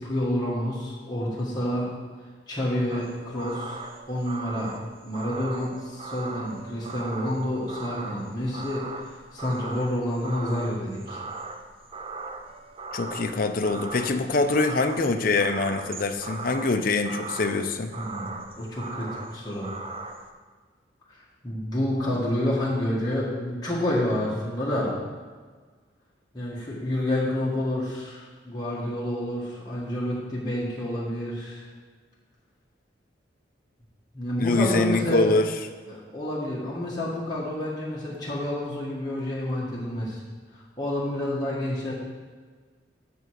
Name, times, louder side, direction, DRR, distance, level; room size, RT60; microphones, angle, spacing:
voice 1, 0.0-1.9 2.5-3.8 4.1-4.7 5.0-11.2 18.0-19.7 21.1-24.9 26.3-31.7 34.1-35.3 35.9-40.2 40.5-41.9, left 1 dB, 20° left, -7 dB, 1.6 m, -29 dB
sound 1, 2.9-20.3, right 3 dB, 30° right, 0.5 m, -39 dB
voice 2, 12.9-17.9 34.4-35.5, left 3 dB, 50° left, 7 dB, 0.5 m, -24 dB
6.7 x 5.3 x 6.4 m, 1.5 s
head